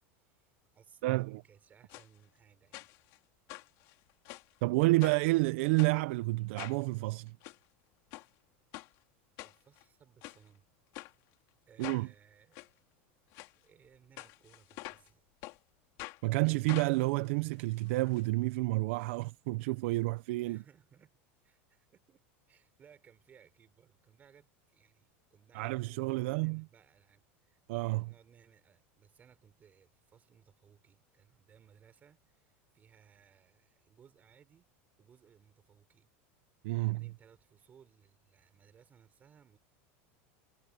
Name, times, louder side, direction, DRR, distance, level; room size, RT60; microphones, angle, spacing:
voice 1, 0.2-2.9 3.4-3.5 9.4-10.9 11.7-12.8 13.6-15.3 20.4-21.2 21.4-34.7 35.0-36.1 36.7-39.6, right 8 dB, 25° right, 4.8 m, -63 dB
voice 2, 1.0-1.4 4.6-7.4 11.8-12.1 16.2-20.6 25.5-26.6 27.7-28.1 36.6-37.0, right 22 dB, 65° right, 0.6 m, -30 dB
sound 1, 1.9-2.1 2.7-3.2 3.5-4.5 5.0-5.3 5.8-6.0 6.6-6.8 7.3-7.6 8.1-8.3 8.7-8.9 9.4-9.8 10.2-10.4 10.9-11.1 11.8-12.0 12.5-12.7 13.3-13.5 14.2-15.1 15.4-15.6 16.0-16.2 16.7-18.2 18.5-18.6 18.8-18.9, left 21 dB, 50° left, 2.4 m, -46 dB
supercardioid pair, 155°, 7 cm